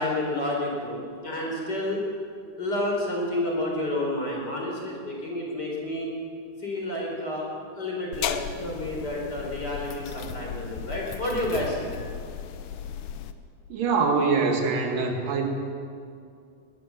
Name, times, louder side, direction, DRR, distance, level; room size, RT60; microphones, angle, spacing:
voice 1, 0.0-2.0 2.6-6.1 6.6-7.5 7.8-11.9, left 1 dB, 30° left, -1 dB, 4.7 m, -30 dB
sound 1, 8.1-13.3, left 8 dB, 75° left, 2.4 m, -35 dB
voice 2, 13.7-15.5, right 4 dB, 75° right, 3 dB, 3.8 m, -24 dB
20.5 x 20.5 x 7.5 m, 2.4 s
omnidirectional pair, 3.9 m